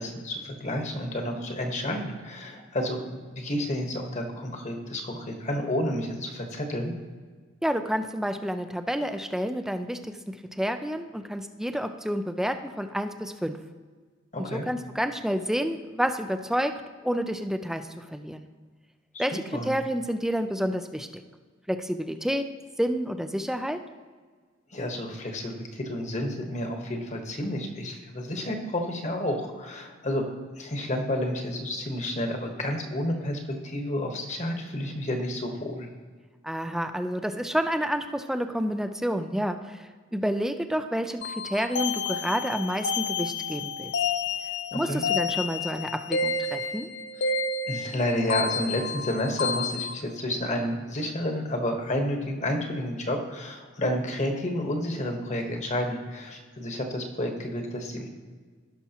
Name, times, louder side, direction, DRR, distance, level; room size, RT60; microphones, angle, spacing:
voice 1, 0.0-6.9 14.3-14.7 19.1-19.7 24.7-30.2 30.6-35.9 44.7-45.0 47.7-58.1, left 1 dB, 35° left, 3 dB, 1.2 m, -30 dB
voice 2, 7.6-13.6 14.4-16.7 17.0-18.5 19.2-21.2 21.7-22.5 22.8-23.8 36.4-43.9 44.7-46.9, equal, ahead, 8 dB, 0.4 m, -29 dB
sound 1, 41.2-49.9, left 4 dB, 55° left, 0.5 m, -30 dB
16.5 x 6.0 x 2.9 m, 1.5 s
head